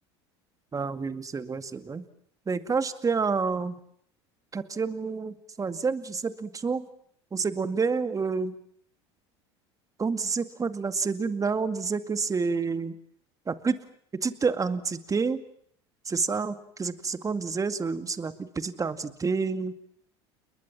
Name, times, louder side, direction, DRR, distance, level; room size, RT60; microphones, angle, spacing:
voice 1, 0.7-2.0 2.5-3.8 4.5-6.9 7.3-8.5 10.0-12.9 13.5-13.8 14.2-15.4 16.1-19.7, right 5 dB, 25° right, 11 dB, 2.2 m, -29 dB
30.0 x 21.5 x 7.6 m, 0.65 s
hypercardioid pair, 80°, 14 cm